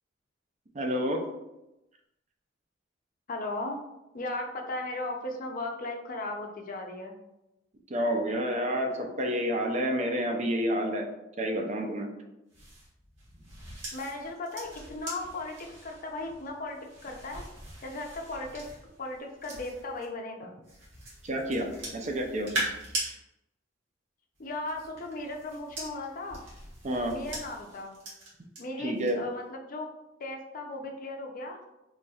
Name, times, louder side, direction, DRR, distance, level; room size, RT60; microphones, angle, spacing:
voice 1, 0.7-1.2 7.9-11.1 11.4-12.1 21.2-21.7 21.9-22.5 26.8-27.1 28.8-29.2, equal, 40° right, 3 dB, 0.5 m, -29 dB
voice 2, 3.3-3.8 4.1-7.2 13.9-17.4 17.8-18.7 19.0-20.6 24.4-26.4 27.1-28.0 28.6-29.9 30.2-31.6, left 2 dB, 45° left, 2 dB, 0.5 m, -37 dB
sound 1, 12.5-20.1 20.6-23.1 24.4-28.6 29.0-29.3, right 1 dB, 70° right, 1.5 m, -41 dB
4.1 x 3.1 x 2.3 m, 0.94 s
head